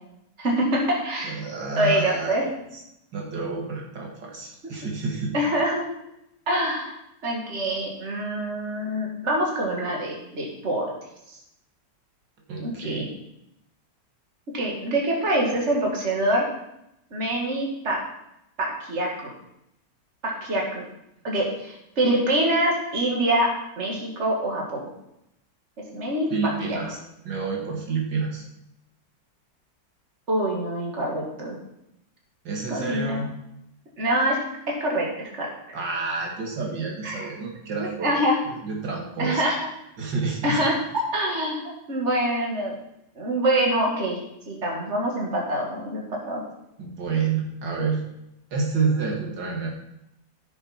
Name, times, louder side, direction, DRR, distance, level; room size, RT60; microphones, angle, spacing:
voice 1, 0.4-1.4 1.8-2.5 4.6-4.7 5.3-5.8 6.5-7.0 7.2-10.9 11.3-11.4 12.6-13.1 14.5-16.5 17.1-18.0 18.6-19.3 20.2-20.8 21.2-24.9 25.9-26.3 26.7-26.8 30.3-31.6 32.7-33.2 34.0-34.4 34.7-35.8 37.0-37.3 38.0-38.4 39.2-39.6 40.4-40.8 41.1-42.7 43.2-44.2 44.5-46.4, right 1 dB, 40° right, -1 dB, 2.6 m, -25 dB
voice 2, 1.2-2.5 3.1-5.3 12.5-13.1 26.3-27.0 27.2-28.4 32.4-33.3 35.7-39.4 40.0-40.6 46.8-48.0 48.5-49.7, right 4 dB, 80° right, -1 dB, 2.6 m, -29 dB
15.0 x 6.8 x 4.4 m, 0.82 s
omnidirectional pair, 1.9 m